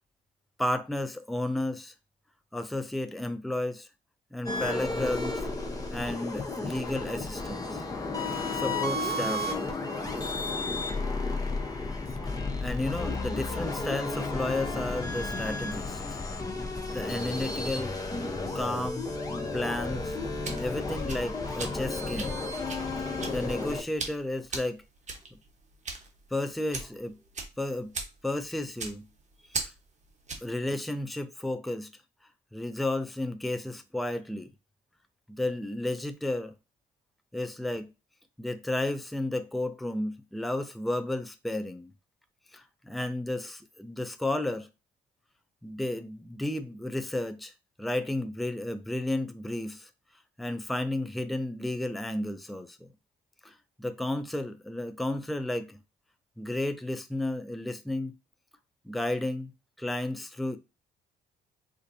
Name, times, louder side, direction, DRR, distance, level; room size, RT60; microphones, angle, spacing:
voice 1, 0.6-1.9 2.5-3.9 4.3-5.5 5.9-7.8 8.5-9.7 12.6-16.0 16.9-18.0 18.5-19.1 19.5-20.2 20.6-22.4 23.3-24.8 26.3-27.2 27.6-27.9 28.2-29.1 29.6-29.7 30.4-31.9 32.5-34.5 35.3-36.5 37.3-37.9 38.4-41.9 42.5-44.7 45.6-47.5 47.8-49.9 50.4-52.9 53.4-55.8 56.4-58.1 58.8-59.5 59.8-60.6, left 1 dB, ahead, 0.4 m, -32 dB
sound 1, 4.5-23.8, left 2 dB, 20° left, 0.9 m, -32 dB
sound 2, 20.1-30.6, right 3 dB, 35° right, 1.1 m, -40 dB
4.1 x 2.6 x 2.7 m
cardioid pair, 90°, 20 cm